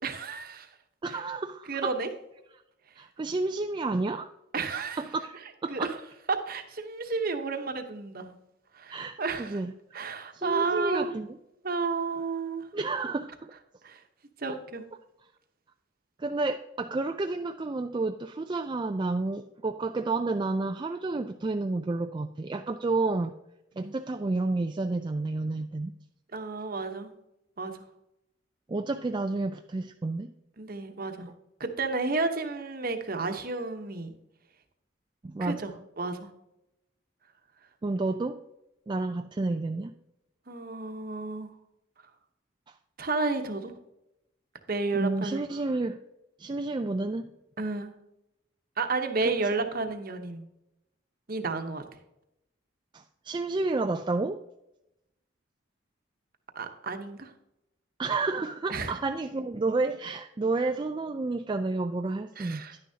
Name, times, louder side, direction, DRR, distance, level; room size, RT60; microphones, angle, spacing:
voice 1, 0.0-0.7 1.1-1.2 1.7-2.1 4.5-5.0 5.7-5.9 6.3-8.3 8.8-9.6 9.9-11.2 11.6-12.7 13.8-14.0 14.4-14.8 23.8-23.9 26.3-27.1 27.6-27.7 30.6-31.3 31.6-34.1 35.4-35.7 36.0-36.3 40.5-41.5 43.0-43.7 44.7-45.4 47.6-47.9 48.8-50.4 51.3-51.8 56.5-57.3 58.7-58.9 62.4-62.7, right 3 dB, 45° right, 6 dB, 1.0 m, -31 dB
voice 2, 1.0-1.9 3.0-4.3 5.0-5.9 8.9-9.7 10.3-11.4 12.7-13.5 14.5-14.6 16.2-23.3 23.8-25.9 28.7-30.3 35.2-35.6 37.8-38.4 38.9-39.9 42.7-42.8 44.9-46.0 46.4-47.3 49.2-49.3 49.6-49.7 52.9-54.4 58.0-62.8, right 3 dB, 25° right, 6 dB, 0.3 m, -30 dB
11.0 x 9.9 x 2.8 m, 0.87 s
head